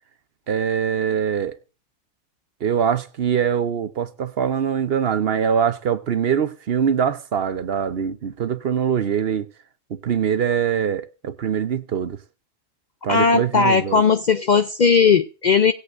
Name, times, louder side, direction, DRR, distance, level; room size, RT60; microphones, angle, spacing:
voice 1, 0.5-1.6 2.6-9.5 9.9-12.2 13.0-14.0, right 8 dB, 55° right, 0.9 m, -23 dB
voice 2, 13.1-15.7, left 5 dB, 50° left, 0.5 m, -17 dB
18.5 x 8.4 x 2.5 m
omnidirectional pair, 1.3 m